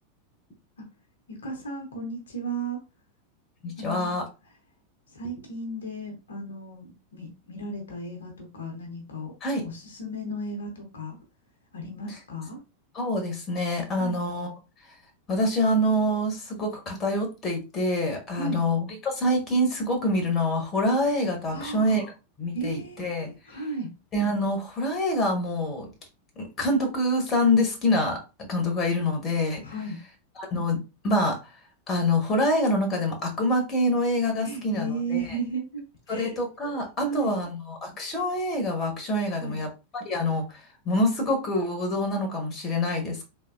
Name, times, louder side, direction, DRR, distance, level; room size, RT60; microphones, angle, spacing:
voice 1, 1.3-2.8 3.8-4.1 5.1-9.3 9.6-11.2 11.7-12.6 14.0-14.2 18.3-18.6 21.5-22.1 22.5-23.9 29.6-30.0 34.4-36.4 37.0-37.4 39.4-39.6, right 2 dB, 70° left, 0.9 m, -35 dB
voice 2, 3.6-4.2 9.4-9.7 12.9-14.5 15.3-22.1 22.4-23.3 24.1-25.9 26.4-28.2 28.5-29.6 30.4-31.5 31.9-35.2 36.1-43.3, left 1 dB, 25° left, 1.1 m, -26 dB
3.5 x 2.7 x 2.4 m
figure-of-eight pair, 90°, 0 cm